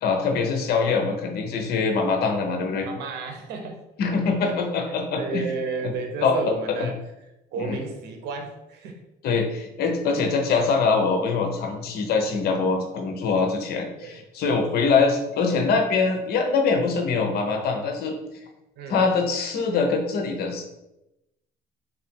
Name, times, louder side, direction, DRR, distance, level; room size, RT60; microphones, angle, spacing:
voice 1, 0.0-2.9 4.0-5.4 6.2-6.4 6.7-6.8 7.6-7.8 9.2-18.1 18.9-20.6, left 4 dB, 70° left, 4 dB, 0.8 m, -23 dB
voice 2, 2.8-3.8 4.4-4.6 4.9-6.9 7.5-9.0 14.0-14.2 18.8-19.1, right 4 dB, 80° right, 4 dB, 0.8 m, -32 dB
3.7 x 2.6 x 4.3 m, 0.91 s
cardioid pair, 110°, 17 cm